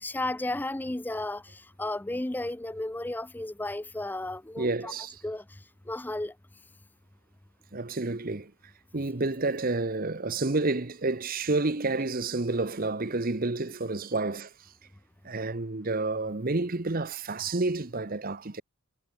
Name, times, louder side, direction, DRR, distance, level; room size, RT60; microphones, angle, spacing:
voice 1, 0.0-4.9 5.2-5.6 5.9-6.3, left 2 dB, 10° left, 0.4 m, -33 dB
voice 2, 4.6-5.2 7.7-8.5 8.9-14.5 15.2-18.6, right 3 dB, 40° right, 1.0 m, -29 dB
head